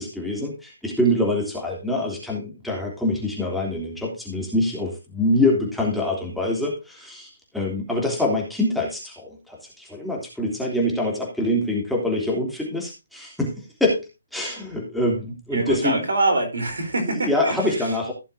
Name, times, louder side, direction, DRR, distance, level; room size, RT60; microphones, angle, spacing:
voice 1, 0.0-13.5 13.8-14.0 14.3-16.0 17.2-18.1, left 1 dB, ahead, -3 dB, 3.3 m, -25 dB
voice 2, 15.5-18.0, right 2 dB, 70° right, 5 dB, 4.0 m, -24 dB
16.0 x 6.9 x 2.8 m, 0.26 s
figure-of-eight pair, 145°, 0 cm